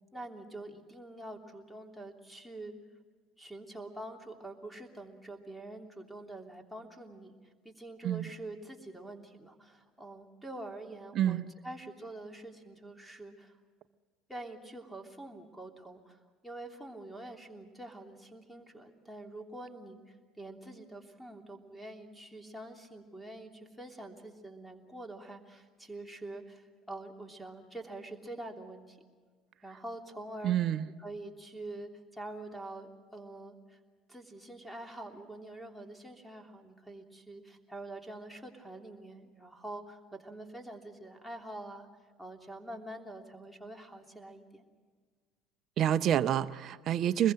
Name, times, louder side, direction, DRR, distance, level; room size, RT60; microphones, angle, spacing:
voice 1, 0.1-2.7 3.4-7.3 7.6-13.6 14.3-29.0 29.6-30.5 31.0-33.8 34.1-41.9 42.2-44.6, right 2 dB, ahead, 3 dB, 3.2 m, -46 dB
voice 2, 11.1-11.5 30.4-30.8 45.8-47.3, right 11 dB, 50° right, 15 dB, 0.8 m, -28 dB
25.0 x 21.0 x 6.4 m, 1.5 s
hypercardioid pair, 65°, 0 cm